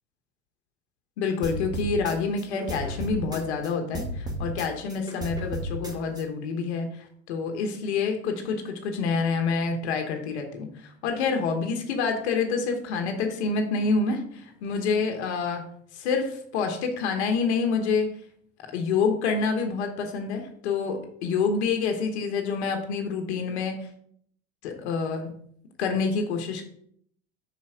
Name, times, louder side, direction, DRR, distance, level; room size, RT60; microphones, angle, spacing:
voice 1, 1.2-6.9 7.3-15.6 15.9-18.1 18.6-23.8 24.6-25.3 25.8-26.6, left 5 dB, 85° left, 4 dB, 1.1 m, -27 dB
sound 1, 1.4-3.7 3.9-6.2, right 1 dB, 10° right, 1.4 m, -33 dB
5.5 x 4.3 x 4.8 m, 0.66 s
hypercardioid pair, 95°, 33 cm